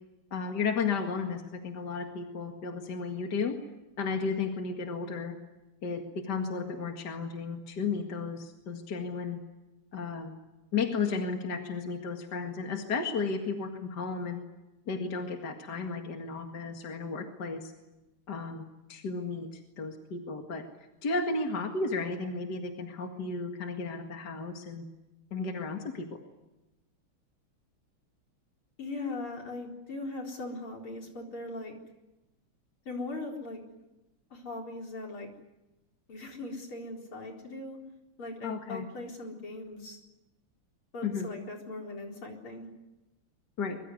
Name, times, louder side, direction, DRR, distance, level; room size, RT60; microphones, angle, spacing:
voice 1, 0.3-3.6 4.0-5.4 5.8-9.4 9.9-10.4 10.7-14.4 14.9-17.7 18.3-19.5 19.8-20.6 21.0-24.9 25.3-26.2 38.4-38.9 41.0-41.3 43.6-43.8, left 4 dB, 50° left, 3 dB, 2.5 m, -33 dB
voice 2, 28.8-31.7 32.8-33.6 34.3-35.3 36.1-37.8 38.2-40.0 40.9-42.7, left 2 dB, 75° left, 1 dB, 5.1 m, -39 dB
24.0 x 23.0 x 9.6 m, 1.0 s
omnidirectional pair, 2.4 m